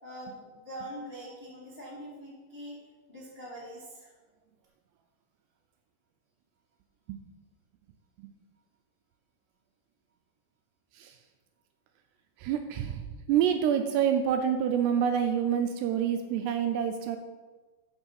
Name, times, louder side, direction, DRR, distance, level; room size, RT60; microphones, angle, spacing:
voice 1, 0.0-2.8 3.1-4.1, equal, 90° left, -7 dB, 0.5 m, -43 dB
voice 2, 12.4-17.2, right 8 dB, 80° right, 6 dB, 2.4 m, -27 dB
7.3 x 6.1 x 6.4 m, 1.3 s
omnidirectional pair, 5.2 m